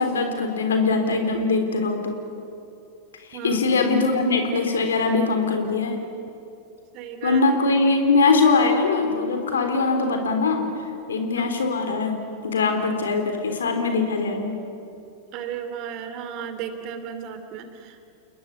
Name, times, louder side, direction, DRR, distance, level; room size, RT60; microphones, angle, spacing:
voice 1, 0.0-2.2 3.3-6.0 7.2-10.7 11.1-12.2 12.4-14.6, left 3 dB, 65° left, 6 dB, 3.8 m, -22 dB
voice 2, 3.3-3.6 6.9-7.4 11.3-11.5 15.3-18.0, right 8 dB, 40° right, 9 dB, 2.7 m, -34 dB
29.5 x 20.5 x 8.4 m, 2.7 s
figure-of-eight pair, 90°, 0 cm